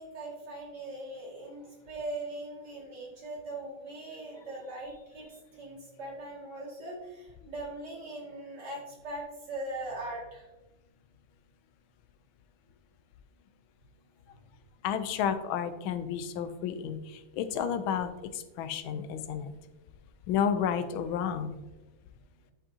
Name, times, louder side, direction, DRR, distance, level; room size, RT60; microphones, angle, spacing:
voice 1, 0.0-10.5, right 2 dB, 55° right, -4 dB, 2.7 m, -40 dB
voice 2, 14.8-19.5 20.3-21.6, left 8 dB, 85° left, 10 dB, 1.5 m, -31 dB
11.0 x 5.3 x 2.8 m, 1.1 s
omnidirectional pair, 2.2 m